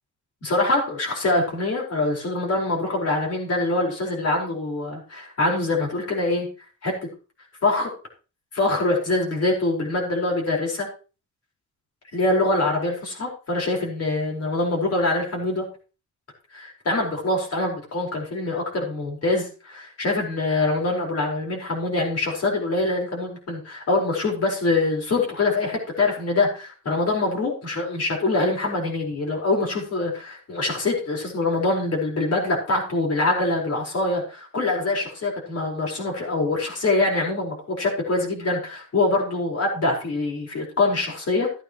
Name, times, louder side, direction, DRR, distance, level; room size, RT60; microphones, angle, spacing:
voice 1, 0.4-6.5 6.8-6.9 7.6-7.9 8.5-10.9 12.1-15.6 16.5-41.6, left 2 dB, 50° left, -1 dB, 5.0 m, -24 dB
16.5 x 8.9 x 3.1 m, 0.35 s
wide cardioid pair, 155°, 31 cm